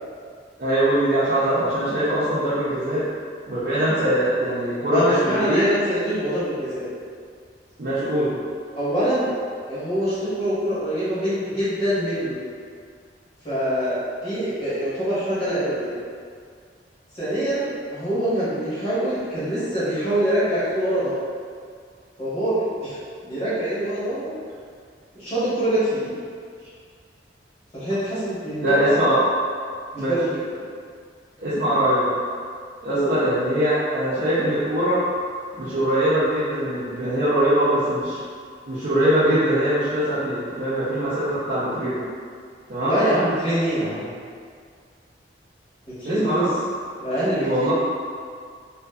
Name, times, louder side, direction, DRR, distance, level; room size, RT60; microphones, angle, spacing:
voice 1, 0.6-3.0 3.5-5.7 7.8-8.3 28.6-29.2 30.0-30.1 31.4-32.1 32.8-35.0 35.6-38.2 38.7-42.0 42.7-43.0 46.1-46.4 47.4-47.7, right 1 dB, 55° right, -11 dB, 0.5 m, -22 dB
voice 2, 4.9-6.9 8.7-9.3 9.7-12.4 13.4-15.9 17.1-21.1 22.2-23.0 23.2-24.3 25.1-26.1 27.7-28.9 29.9-30.3 32.9-33.1 42.8-44.1 46.0-46.4 47.0-47.7, right 1 dB, 35° left, -13 dB, 1.0 m, -24 dB
2.5 x 2.4 x 2.2 m, 2.1 s
head